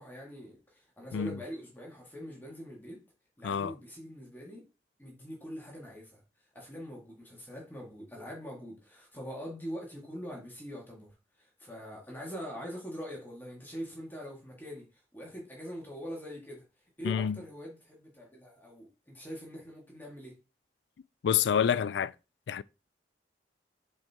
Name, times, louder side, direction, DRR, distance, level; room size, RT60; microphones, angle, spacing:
voice 1, 0.0-3.0 3.4-4.6 5.0-6.2 6.5-16.6 17.0-20.4, equal, 10° left, 1.9 m, -43 dB
voice 2, 17.0-17.4 21.2-22.1 22.5-22.6, left 8 dB, 80° left, 0.3 m, -27 dB
7.7 x 4.5 x 3.6 m
head